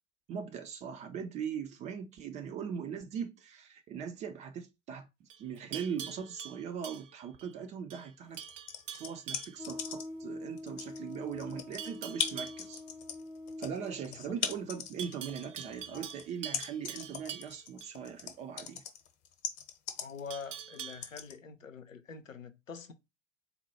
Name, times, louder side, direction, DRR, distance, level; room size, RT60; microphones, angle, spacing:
voice 1, 0.3-8.4 9.0-12.8 13.6-18.8, right 7 dB, 20° right, 0.4 m, -40 dB
Livestock farm animals working animals, 5.3-7.5 7.9-8.1 8.4-9.6 11.8-12.7 15.0-17.9 20.3-21.2, right 9 dB, 70° right, 0.6 m, -45 dB
sound 1, 8.3-10.2 10.6-21.3, left 8 dB, 45° left, 0.9 m, -39 dB
sound 2, 9.6-16.1, left 1 dB, 85° right, 1.9 m, -46 dB
voice 2, 20.0-22.9, left 6 dB, 80° left, 0.7 m, -45 dB
4.0 x 2.2 x 4.1 m
figure-of-eight pair, 85°, 38 cm